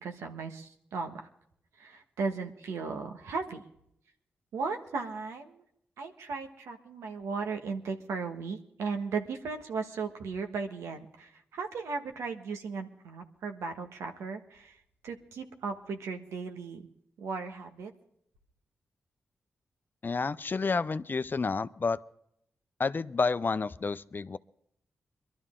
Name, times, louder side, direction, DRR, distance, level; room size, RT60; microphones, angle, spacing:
voice 1, 0.0-1.3 1.8-3.6 4.5-5.6 6.0-14.8 15.0-16.8 17.2-17.9, right 4 dB, 90° right, 5 dB, 1.4 m, -36 dB
voice 2, 20.0-22.0 22.8-24.4, left 4 dB, 45° left, 14 dB, 0.6 m, -30 dB
22.5 x 12.5 x 3.8 m, 0.73 s
supercardioid pair, 45°, 5 cm